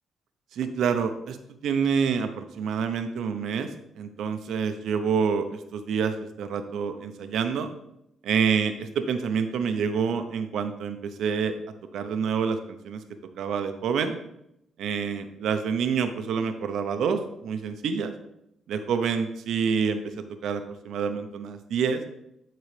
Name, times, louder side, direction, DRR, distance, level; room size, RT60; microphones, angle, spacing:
voice 1, 0.5-1.4 1.6-3.7 4.0-7.7 8.2-11.5 11.9-13.0 13.4-14.1 14.8-18.1 18.7-20.0 20.4-22.0, right 6 dB, 75° right, 8 dB, 0.7 m, -27 dB
12.0 x 4.0 x 3.3 m, 0.80 s
cardioid pair, 90°, 0 cm